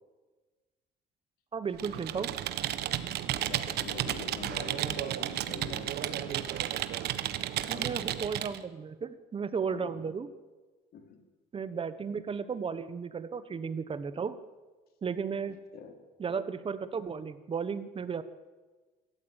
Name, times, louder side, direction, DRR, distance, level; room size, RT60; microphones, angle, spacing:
voice 1, 1.5-2.3 7.7-10.3 11.5-14.4 15.0-15.6 16.2-18.2, right 6 dB, 30° right, 13 dB, 1.3 m, -34 dB
Computer keyboard, 1.7-8.6, right 12 dB, 75° right, 1.3 m, -33 dB
voice 2, 3.5-6.5 7.5-8.1 9.7-10.1 10.9-11.2 15.7-15.9, left 6 dB, 65° left, 4 dB, 4.1 m, -45 dB
25.0 x 13.5 x 9.1 m, 1.3 s
cardioid pair, 110°, 17 cm